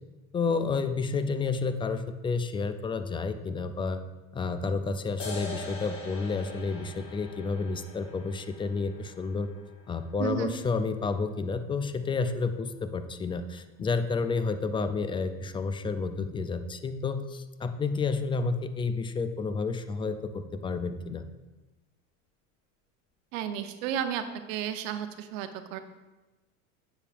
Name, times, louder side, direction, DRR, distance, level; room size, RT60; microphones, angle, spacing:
voice 1, 0.3-4.0 4.3-9.5 9.9-21.2, left 4 dB, 15° left, 10 dB, 0.3 m, -30 dB
sound 1, 5.2-12.2, left 2 dB, 35° left, 2.3 m, -45 dB
voice 2, 10.2-10.6 23.3-24.2 24.5-25.8, right 9 dB, 70° right, 8 dB, 0.9 m, -32 dB
9.7 x 7.1 x 2.5 m, 1.1 s
hypercardioid pair, 95°, 41 cm